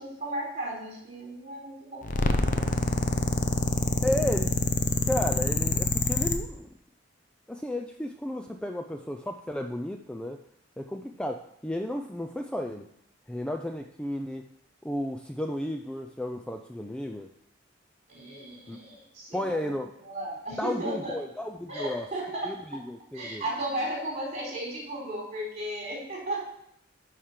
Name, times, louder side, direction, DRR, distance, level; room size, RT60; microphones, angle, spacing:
voice 1, 0.0-2.8 3.0-3.2 3.9-4.1 18.1-19.8 20.0-21.1 21.7-22.5 23.1-26.4, right 1 dB, 40° right, -3 dB, 4.4 m, -35 dB
sound 1, 2.0-6.4, left 3 dB, 45° left, 0.8 m, -26 dB
voice 2, 4.0-4.6 4.9-6.7 7.5-10.4 10.8-12.9 13.3-14.4 14.8-17.3 18.7-18.8 19.3-19.9 20.6-22.1 22.4-23.4, left 1 dB, 5° left, 4 dB, 0.4 m, -33 dB
10.0 x 5.0 x 5.8 m, 0.73 s
head